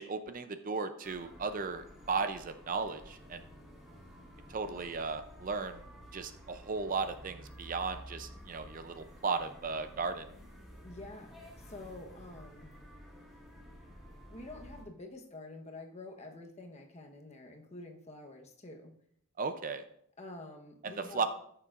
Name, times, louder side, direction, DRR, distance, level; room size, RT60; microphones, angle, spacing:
voice 1, 0.0-3.4 4.5-5.8 6.1-10.3 19.4-19.8 20.8-21.2, right 4 dB, 40° right, 9 dB, 0.5 m, -36 dB
sound 1, 1.0-14.8, equal, ahead, 1.8 m, -52 dB
voice 2, 10.8-11.4 11.7-12.7 14.3-18.9 20.2-21.3, left 2 dB, 30° left, 3 dB, 1.0 m, -48 dB
13.5 x 6.8 x 2.5 m, 0.69 s
head